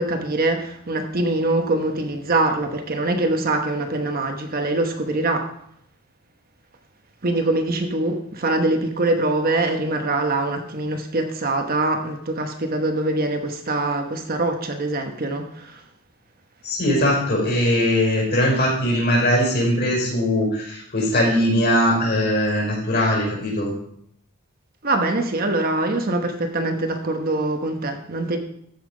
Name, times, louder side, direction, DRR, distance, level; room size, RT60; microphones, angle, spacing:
voice 1, 0.0-5.5 7.2-15.8 24.8-28.4, right 2 dB, 40° right, 5 dB, 1.0 m, -23 dB
voice 2, 16.6-23.7, left 1 dB, 45° left, -2 dB, 5.3 m, -20 dB
14.0 x 5.8 x 5.0 m, 0.71 s
head